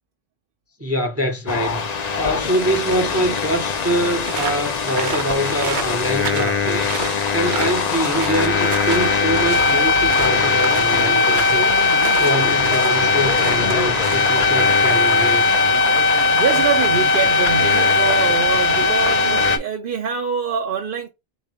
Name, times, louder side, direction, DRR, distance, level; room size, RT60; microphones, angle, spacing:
voice 1, 0.8-1.9 2.2-11.7 12.2-15.6, right 1 dB, 15° right, 0.6 m, -24 dB
sound 1, 1.5-19.6, left 4 dB, 45° left, 0.6 m, -19 dB
sound 2, 4.3-14.6, right 6 dB, 90° right, 1.1 m, -31 dB
sound 3, 6.9-17.1, left 7 dB, 75° left, 0.9 m, -32 dB
voice 2, 16.4-21.1, right 7 dB, 60° right, 0.8 m, -24 dB
3.8 x 2.8 x 3.3 m
omnidirectional pair, 1.1 m